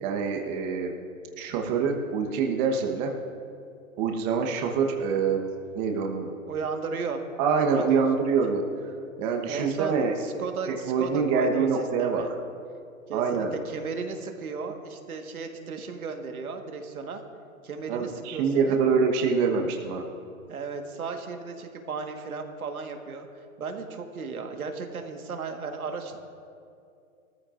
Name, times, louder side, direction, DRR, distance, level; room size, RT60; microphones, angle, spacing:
voice 1, 0.0-0.9 1.4-3.1 4.0-5.4 5.7-6.3 7.4-8.6 9.2-10.1 10.7-12.3 13.1-13.5 17.9-20.0, right 5 dB, 30° right, 2 dB, 1.1 m, -25 dB
voice 2, 6.5-7.2 7.6-8.0 9.5-11.7 12.0-12.3 13.1-17.2 17.6-18.8 20.5-23.3 23.6-26.2, right 5 dB, 85° right, 4 dB, 1.6 m, -35 dB
19.5 x 14.0 x 2.5 m, 2.5 s
hypercardioid pair, 140°, 42 cm